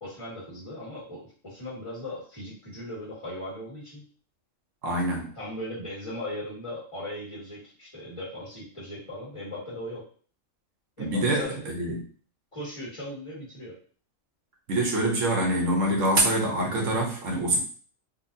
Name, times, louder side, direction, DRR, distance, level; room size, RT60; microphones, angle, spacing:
voice 1, 0.0-4.0 5.4-10.0 11.0-11.6 12.5-13.7, left 1 dB, 25° left, -7 dB, 1.8 m, -38 dB
voice 2, 4.8-5.3 11.0-12.0 14.7-17.6, right 1 dB, 80° right, 0 dB, 1.3 m, -25 dB
3.9 x 2.5 x 2.6 m, 0.43 s
omnidirectional pair, 1.3 m